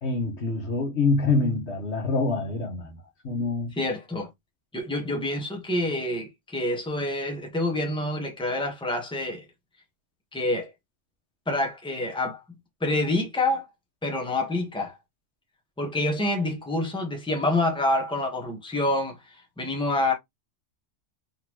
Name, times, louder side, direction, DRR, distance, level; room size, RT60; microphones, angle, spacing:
voice 1, 0.0-3.0 3.2-3.7, left 3 dB, 60° left, 1.7 m, -25 dB
voice 2, 3.8-4.3 4.7-9.4 10.3-10.7 11.5-12.4 12.8-13.7 14.0-15.0 15.8-20.1, left 2 dB, 5° left, 1.3 m, -27 dB
4.3 x 3.9 x 3.1 m
omnidirectional pair, 1.3 m